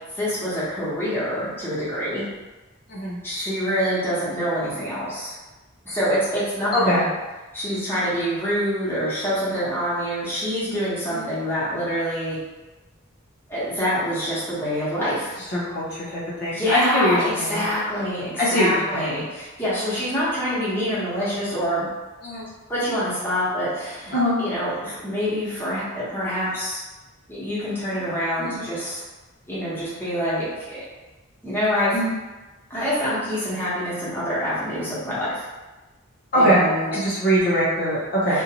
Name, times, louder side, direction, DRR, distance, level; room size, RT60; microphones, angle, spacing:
voice 1, 0.2-2.2 3.2-5.3 5.8-7.1 7.5-12.4 13.5-15.3 16.5-21.9 22.7-26.8 27.3-29.0 29.5-30.8 31.4-31.9 32.7-35.4 36.3-36.9 38.3-38.4, equal, 10° left, -10 dB, 0.9 m, -26 dB
voice 2, 6.7-7.1 11.1-11.3 15.5-17.6 18.4-19.2 22.2-22.5 24.1-24.4 28.4-28.6 31.9-32.1 36.3-36.6 36.9-38.4, equal, 45° left, -8 dB, 0.6 m, -22 dB
2.5 x 2.2 x 2.8 m, 1.2 s
head